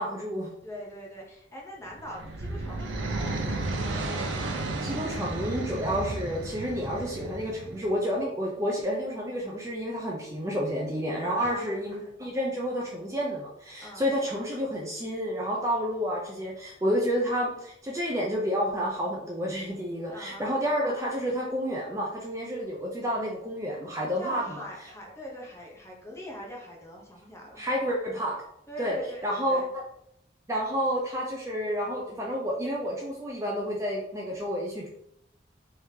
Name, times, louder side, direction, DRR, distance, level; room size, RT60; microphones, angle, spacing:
voice 1, 0.0-0.5 4.8-24.6 27.6-28.4 28.8-29.0 29.2-29.8 30.5-34.9, equal, 15° right, -3 dB, 0.5 m, -30 dB
voice 2, 0.6-3.8 11.2-12.1 13.8-14.1 20.1-20.7 24.2-27.6 28.7-29.7, equal, 15° left, -2 dB, 0.8 m, -42 dB
sound 1, 1.9-8.0, right 2 dB, 90° right, 0.5 m, -33 dB
3.4 x 3.2 x 2.8 m, 0.75 s
head